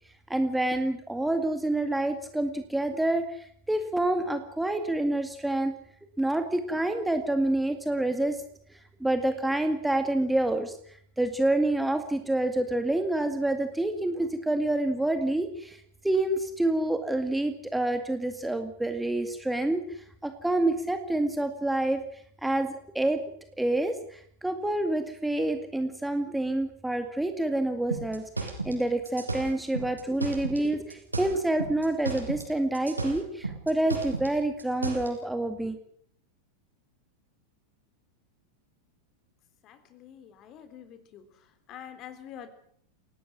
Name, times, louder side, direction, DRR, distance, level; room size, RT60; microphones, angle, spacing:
voice 1, 0.3-5.7 6.2-8.4 9.0-10.8 11.2-22.0 22.4-23.2 23.6-35.8, right 1 dB, 5° right, 7 dB, 2.1 m, -28 dB
sound 1, 27.9-30.6 30.9-32.5 32.7-35.1, right 3 dB, 85° right, 6.4 m, -34 dB
voice 2, 39.6-41.2 41.7-42.5, left 9 dB, 35° left, 10 dB, 3.6 m, -46 dB
29.0 x 18.5 x 6.2 m, 0.62 s
figure-of-eight pair, 90°, 0 cm